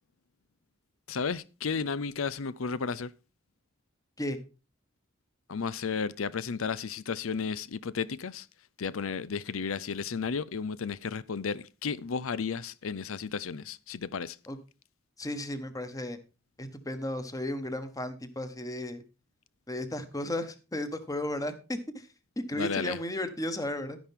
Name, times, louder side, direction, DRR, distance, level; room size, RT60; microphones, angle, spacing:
voice 1, 1.1-3.1 5.5-8.5 8.8-14.4 22.5-23.0, left 5 dB, 90° left, 0.6 m, -33 dB
voice 2, 15.2-16.2 16.6-19.0 19.7-21.5 21.9-22.1 22.4-24.0, left 1 dB, 15° left, 1.3 m, -34 dB
11.5 x 10.5 x 3.6 m
head